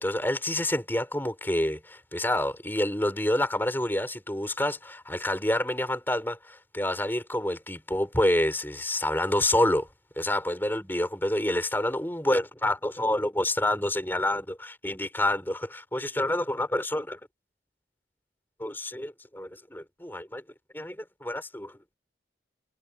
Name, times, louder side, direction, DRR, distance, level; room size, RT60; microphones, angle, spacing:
voice 1, 0.0-9.9 10.2-17.2 18.6-20.4 20.7-21.7, left 1 dB, 10° left, 5.1 m, -28 dB
head